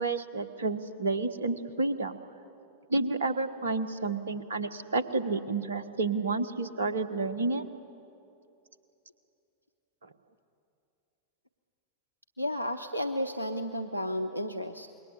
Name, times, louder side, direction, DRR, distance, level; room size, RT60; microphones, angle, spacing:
voice 1, 0.0-2.2 2.9-7.6, right 3 dB, 70° right, 12 dB, 1.3 m, -30 dB
voice 2, 12.4-14.9, equal, 90° right, 9 dB, 0.8 m, -32 dB
27.5 x 22.0 x 8.2 m, 2.7 s
figure-of-eight pair, 90°, 0 cm